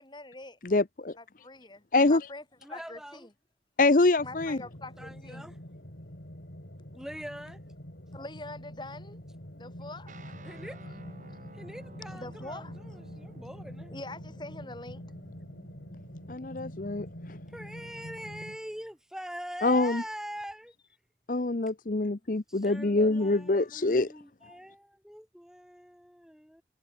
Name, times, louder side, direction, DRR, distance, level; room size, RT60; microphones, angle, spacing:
voice 1, 0.0-0.6 1.2-2.4 2.7-3.3 4.2-5.5 8.1-9.2 9.6-10.3 11.4-11.5 12.1-12.7 13.9-15.0 22.1-22.3, left 2 dB, 25° left, 3.0 m, -44 dB
voice 2, 0.6-1.1 1.9-2.2 3.8-4.6 16.3-17.1 19.6-20.0 21.3-24.1, left 2 dB, 50° left, 0.8 m, -25 dB
voice 3, 2.6-3.3 5.0-5.6 6.9-7.6 10.4-10.8 11.5-13.9 17.5-20.7 22.5-26.6, equal, 5° right, 3.9 m, -43 dB
sound 1, 4.2-18.6, equal, 70° left, 5.2 m, -45 dB
sound 2, 10.1-19.0, right 1 dB, 45° right, 7.9 m, -53 dB
head